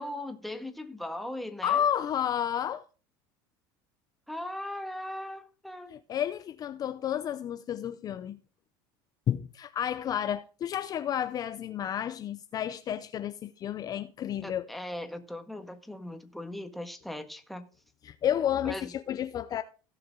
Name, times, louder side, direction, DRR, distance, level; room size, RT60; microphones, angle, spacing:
voice 1, 0.0-1.8 4.3-6.0 14.4-17.6 18.6-18.9, left 1 dB, ahead, 1.4 m, -39 dB
voice 2, 1.6-2.8 5.9-8.4 9.3-14.7 18.0-19.6, left 10 dB, 35° left, 0.6 m, -31 dB
17.0 x 5.9 x 3.7 m
supercardioid pair, 125°, 11 cm